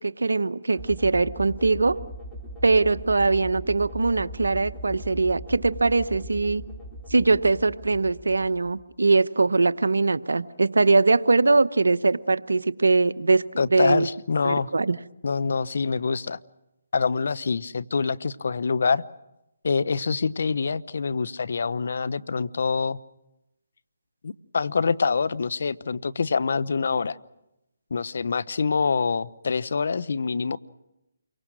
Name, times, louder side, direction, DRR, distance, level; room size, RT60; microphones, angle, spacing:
voice 1, 0.0-2.0 2.6-6.6 7.1-13.4 13.7-14.1 14.4-14.9, right 3 dB, 85° right, 13 dB, 0.9 m, -21 dB
sound 1, 0.7-8.9, equal, ahead, 4.4 m, -40 dB
voice 2, 13.6-14.7 15.2-16.4 16.9-19.0 19.6-23.0 24.2-27.2 27.9-30.6, left 5 dB, 65° left, 16 dB, 0.9 m, -25 dB
28.5 x 24.0 x 6.3 m, 0.91 s
figure-of-eight pair, 150°, 0 cm